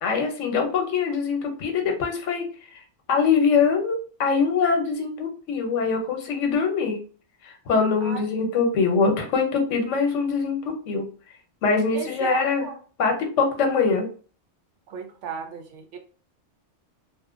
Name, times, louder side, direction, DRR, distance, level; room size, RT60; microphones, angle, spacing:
voice 1, 0.0-2.4 3.1-7.0 7.4-10.6 10.9-11.1 11.6-12.7 13.0-14.1, left 5 dB, 85° left, 3 dB, 1.0 m, -23 dB
voice 2, 11.9-12.8 14.9-16.0, right 6 dB, 80° right, 4 dB, 1.0 m, -36 dB
2.7 x 2.1 x 2.4 m, 0.40 s
omnidirectional pair, 1.2 m